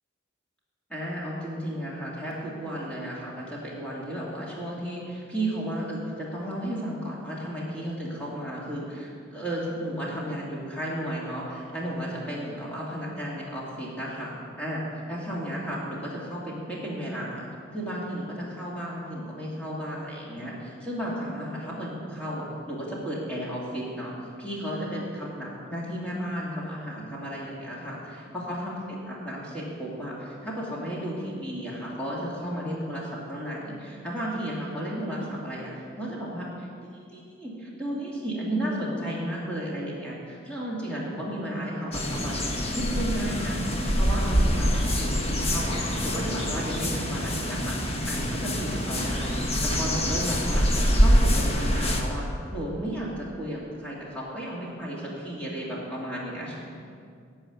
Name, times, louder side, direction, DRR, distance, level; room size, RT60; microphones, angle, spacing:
voice 1, 0.9-14.3 14.6-14.8 15.1-17.5 17.7-24.1 24.4-42.5 42.7-43.6 44.0-49.3 49.7-50.6 50.9-52.2 52.5-56.6, equal, 5° left, -6 dB, 2.6 m, -33 dB
sound 1, 41.9-52.0, equal, 30° left, 1.2 m, -25 dB
15.0 x 5.7 x 9.4 m, 2.3 s
head